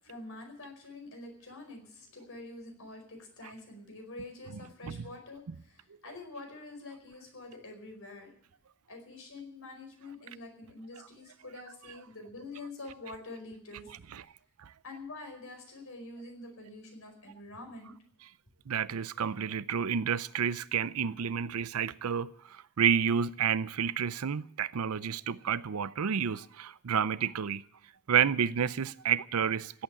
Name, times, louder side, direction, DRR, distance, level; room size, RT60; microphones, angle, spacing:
voice 1, 0.0-8.4 8.9-14.2 14.8-17.9, left 2 dB, 65° left, 4.9 m, -46 dB
voice 2, 18.7-27.6 28.1-29.8, right 7 dB, 75° right, 0.5 m, -30 dB
16.5 x 8.7 x 8.8 m
head